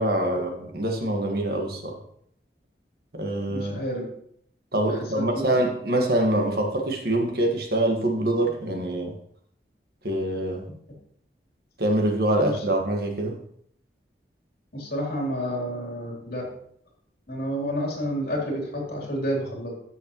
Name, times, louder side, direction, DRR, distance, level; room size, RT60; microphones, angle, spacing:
voice 1, 0.0-1.9 3.1-3.8 4.7-9.1 10.0-10.6 11.8-13.4, right 1 dB, 60° right, 2 dB, 1.6 m, -25 dB
voice 2, 3.5-4.1 4.9-5.6 12.4-12.6 14.7-16.6 17.3-19.7, equal, 55° left, -2 dB, 3.1 m, -30 dB
13.5 x 6.5 x 3.0 m, 0.68 s
head